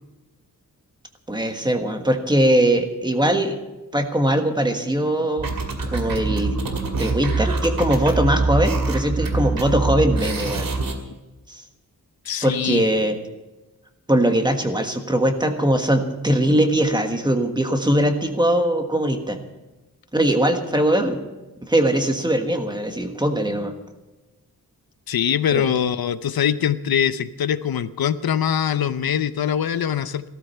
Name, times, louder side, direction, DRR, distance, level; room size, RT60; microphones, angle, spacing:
voice 1, 1.3-3.6 3.9-5.5 5.9-6.6 7.0-10.7 11.5-11.6 12.4-13.2 14.1-19.4 20.1-21.2 21.7-23.7 25.5-25.7, right 1 dB, 10° right, 5 dB, 1.4 m, -21 dB
sound 1, 5.4-10.9, right 3 dB, 70° right, 2.4 m, -24 dB
voice 2, 12.3-12.8 25.1-30.3, left 8 dB, 80° left, 13 dB, 0.7 m, -23 dB
16.5 x 13.5 x 5.7 m, 1.1 s
wide cardioid pair, 175°, 35 cm